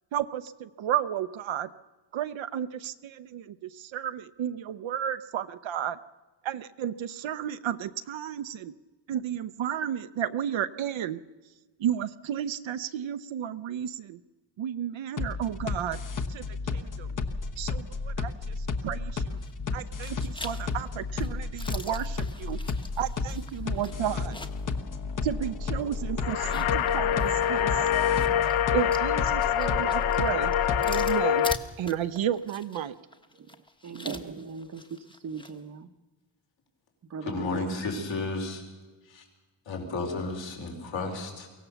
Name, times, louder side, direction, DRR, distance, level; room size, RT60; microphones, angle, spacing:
voice 1, 0.1-1.7 2.1-6.0 6.4-8.7 9.1-11.2 11.8-14.2 14.6-16.0 16.3-16.5 16.7-17.1 17.6-19.4 19.7-22.6 23.0-24.4 25.2-27.9 28.7-30.5 30.9-31.5 31.8-32.9, right 10 dB, 70° right, 0.7 m, -32 dB
sound 1, 15.2-31.1, left 4 dB, 40° left, 1.2 m, -32 dB
sound 2, 19.3-19.7 20.0-24.7 25.1-25.2 26.3-35.6, left 1 dB, 10° left, 1.0 m, -44 dB
sound 3, 26.2-31.6, left 10 dB, 90° left, 0.8 m, -25 dB
voice 2, 33.8-34.8 35.2-35.9 37.1-37.7, right 6 dB, 40° right, 0.8 m, -38 dB
voice 3, 37.2-38.7 39.0-39.2 39.6-41.5, left 3 dB, 70° left, 4.9 m, -33 dB
23.5 x 17.0 x 6.9 m
wide cardioid pair, 160°, 47 cm